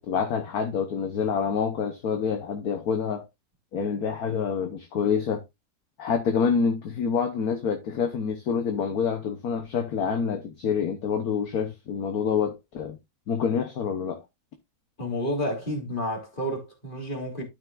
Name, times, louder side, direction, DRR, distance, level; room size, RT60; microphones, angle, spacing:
voice 1, 0.0-3.2 3.7-5.4 6.0-13.0 13.3-14.2, left 6 dB, 55° left, 1.5 m, -27 dB
voice 2, 15.0-17.4, equal, 25° left, 3.2 m, -30 dB
12.5 x 6.0 x 2.4 m
omnidirectional pair, 2.0 m